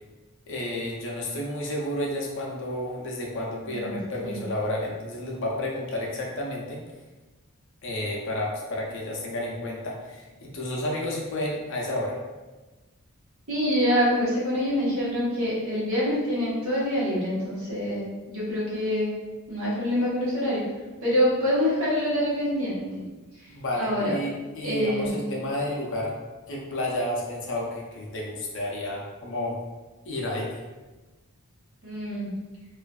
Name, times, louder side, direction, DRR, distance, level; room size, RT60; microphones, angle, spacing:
voice 1, 0.5-6.8 7.8-12.2 23.5-26.1 26.5-29.6 30.0-30.6, left 1 dB, 55° left, -2 dB, 0.5 m, -31 dB
voice 2, 3.7-4.4 13.5-19.1 19.5-20.6 21.0-22.9 23.8-24.2 24.6-25.2 31.8-32.3, equal, 70° right, -8 dB, 1.0 m, -26 dB
2.4 x 2.4 x 2.3 m, 1.2 s
head